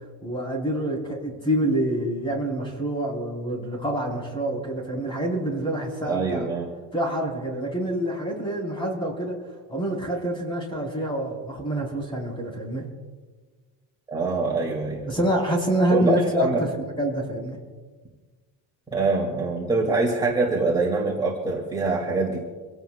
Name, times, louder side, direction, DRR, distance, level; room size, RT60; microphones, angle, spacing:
voice 1, 0.2-6.4 6.9-9.4 9.7-12.9 15.1-16.7 17.0-17.6, right 1 dB, 15° left, -1 dB, 4.4 m, -26 dB
voice 2, 6.0-6.7 14.1-15.2 15.9-16.7 18.9-22.4, right 3 dB, 10° right, -4 dB, 2.5 m, -24 dB
26.5 x 17.0 x 2.4 m, 1.4 s
cardioid pair, 175°, 38 cm